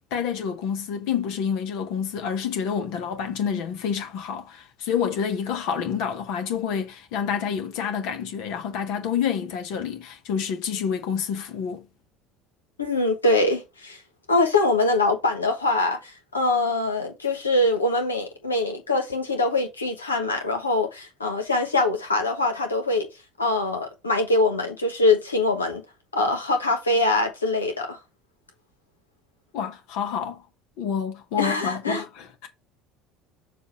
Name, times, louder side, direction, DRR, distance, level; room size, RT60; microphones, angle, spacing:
voice 1, 0.1-11.9 29.5-30.4 30.8-32.5, left 7 dB, 60° left, 1.2 m, -28 dB
voice 2, 12.8-14.0 14.3-23.1 23.4-25.8 26.1-28.0 31.4-32.0, left 2 dB, 90° left, 1.2 m, -23 dB
6.8 x 2.6 x 5.5 m
figure-of-eight pair, 65°, 0 cm